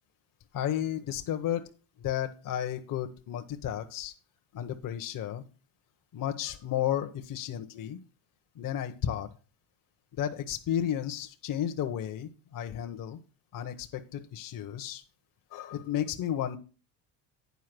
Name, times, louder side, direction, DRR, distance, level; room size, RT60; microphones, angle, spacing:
voice 1, 0.5-1.7 2.0-4.1 4.5-5.4 6.1-8.0 8.6-9.3 10.1-13.2 13.5-15.0 15.5-16.6, left 10 dB, 45° left, 6 dB, 1.0 m, -33 dB
9.5 x 4.6 x 6.0 m, 0.34 s
supercardioid pair, 80°, 46 cm